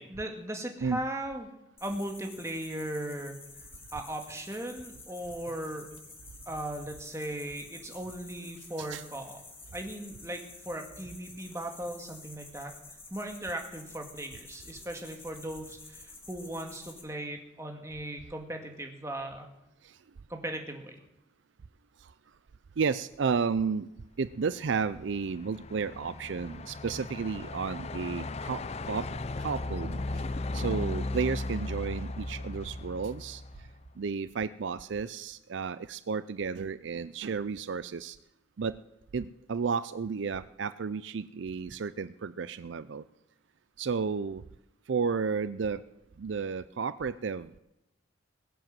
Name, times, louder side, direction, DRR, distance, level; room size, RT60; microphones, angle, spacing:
voice 1, 0.0-1.5 1.8-3.4 3.9-5.9 6.5-9.4 9.7-12.7 13.1-19.5 20.3-21.0 30.6-30.9, right 1 dB, 15° right, 3 dB, 1.9 m, -38 dB
sound 1, 1.8-17.0, left 3 dB, 10° left, 1.9 m, -50 dB
voice 2, 22.8-23.9 24.2-29.1 29.4-30.0 30.5-33.4 34.0-38.2 38.6-38.7 39.1-43.0 43.8-44.4 44.9-45.8 46.2-47.6, right 5 dB, 70° right, 15 dB, 0.4 m, -32 dB
Truck, 24.5-33.8, left 2 dB, 30° left, 0.5 m, -37 dB
21.0 x 7.9 x 7.6 m, 0.88 s
head